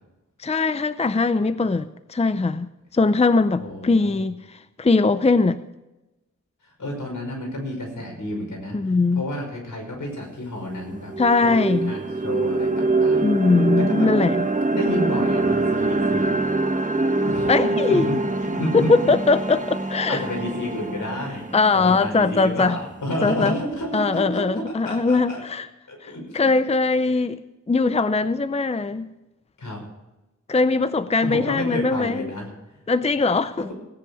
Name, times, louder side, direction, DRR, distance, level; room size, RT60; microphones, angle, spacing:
voice 1, 0.4-5.6 8.7-9.2 11.2-11.9 13.2-14.5 17.5-18.2 18.7-20.2 21.5-22.8 23.2-23.5 23.9-25.7 26.0-27.4 27.7-29.1 30.5-32.3 32.9-33.7, left 3 dB, 20° left, 0.6 m, -21 dB
voice 2, 3.6-4.2 6.6-11.1 11.4-13.3 13.7-14.1 14.7-16.4 17.3-18.2 18.4-19.1 20.1-21.4 21.7-25.4 25.9-26.5 29.6-29.8 31.2-32.5, left 1 dB, 80° left, 5.7 m, -30 dB
sound 1, 10.1-10.2 10.7-22.7, right 2 dB, 25° right, 1.1 m, -24 dB
17.5 x 10.0 x 4.9 m
wide cardioid pair, 70°, 31 cm